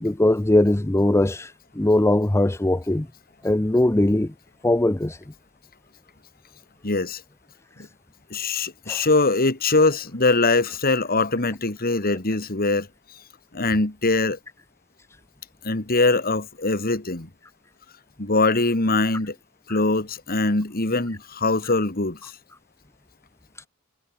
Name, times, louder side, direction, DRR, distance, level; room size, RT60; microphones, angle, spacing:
voice 1, 0.0-3.1 3.4-4.3 4.6-5.2 8.9-9.0, left 1 dB, 15° left, 0.6 m, -20 dB
voice 2, 6.8-7.2 8.3-12.9 13.5-14.4 15.6-17.3 18.2-19.3 19.7-22.3, left 3 dB, 45° left, 2.4 m, -22 dB
head